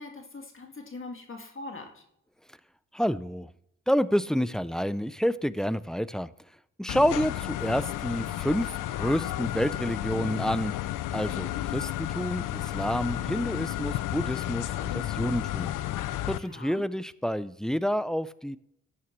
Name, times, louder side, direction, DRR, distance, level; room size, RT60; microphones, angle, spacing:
voice 1, 0.0-2.0 16.3-16.9, left 3 dB, 40° left, 3 dB, 2.1 m, -42 dB
voice 2, 2.9-3.5 3.9-6.3 6.8-10.7 11.1-15.7 16.2-18.6, equal, ahead, 16 dB, 0.5 m, -29 dB
sound 1, 6.9-16.4, left 14 dB, 85° left, 0.5 m, -32 dB
13.0 x 8.8 x 3.1 m, 0.74 s
cardioid pair, 60°, 31 cm